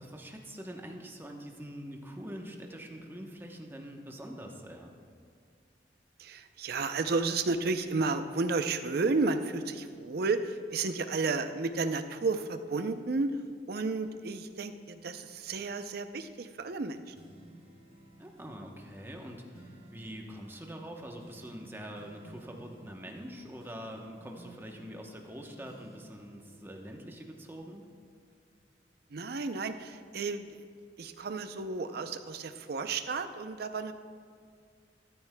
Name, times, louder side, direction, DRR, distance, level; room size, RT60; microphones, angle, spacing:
voice 1, 0.0-4.9 18.2-27.8, equal, 15° right, 2 dB, 0.9 m, -44 dB
voice 2, 6.2-13.4 13.7-17.1 29.1-30.6 31.0-33.9, right 3 dB, 60° right, 9 dB, 0.5 m, -32 dB
sound 1, 17.1-28.8 29.1-31.0 31.5-31.6, right 1 dB, 35° right, 1.2 m, -56 dB
13.5 x 13.0 x 2.2 m, 2.1 s
head